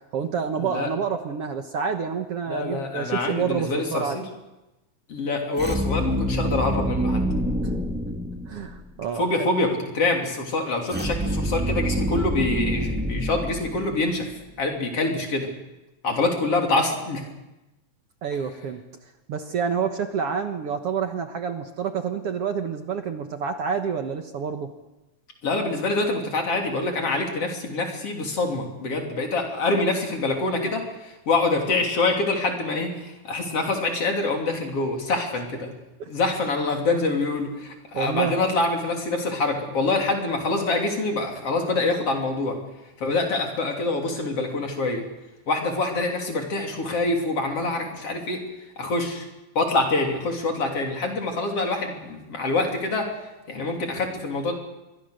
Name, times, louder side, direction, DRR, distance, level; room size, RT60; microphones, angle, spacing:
voice 1, 0.1-4.2 8.5-9.5 18.2-18.8 19.3-24.7 36.0-36.1 37.9-38.3, right 6 dB, 60° right, 6 dB, 2.0 m, -28 dB
voice 2, 2.5-4.2 5.1-7.2 9.2-14.3 14.6-15.5 16.0-17.2 25.4-35.7 36.1-42.6 43.0-45.0 45.5-48.4 48.8-49.3 49.6-53.1 53.5-54.5, left 2 dB, 50° left, 2 dB, 4.1 m, -25 dB
sound 1, 5.5-8.9 10.9-14.2, equal, 5° right, 1.8 m, -26 dB
27.0 x 23.0 x 6.6 m, 1.0 s
omnidirectional pair, 3.5 m